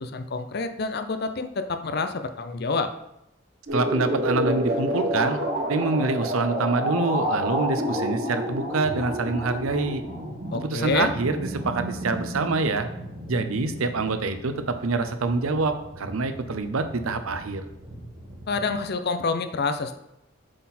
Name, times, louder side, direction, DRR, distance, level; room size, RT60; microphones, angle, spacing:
voice 1, 0.0-2.9 10.5-11.1 18.5-20.0, left 4 dB, 50° left, 8 dB, 0.5 m, -27 dB
sound 1, 3.7-18.9, equal, 50° right, 1.9 m, -31 dB
voice 2, 3.7-5.4 5.7-10.0 10.6-12.9 13.3-17.7, right 3 dB, 80° right, 9 dB, 0.6 m, -26 dB
7.5 x 4.2 x 4.2 m, 0.84 s
head